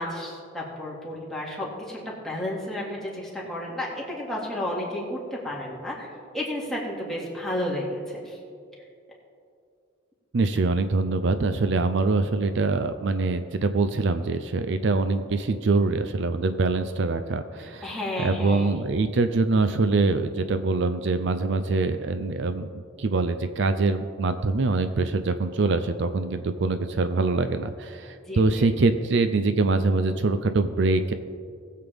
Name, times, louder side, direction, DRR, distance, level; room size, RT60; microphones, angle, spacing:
voice 1, 0.0-5.2 5.4-6.1 6.3-8.4 17.8-18.8 28.3-28.7, left 1 dB, ahead, -5 dB, 2.2 m, -32 dB
voice 2, 10.3-31.1, right 3 dB, 65° right, 10 dB, 0.5 m, -24 dB
19.5 x 7.6 x 3.5 m, 2.3 s
head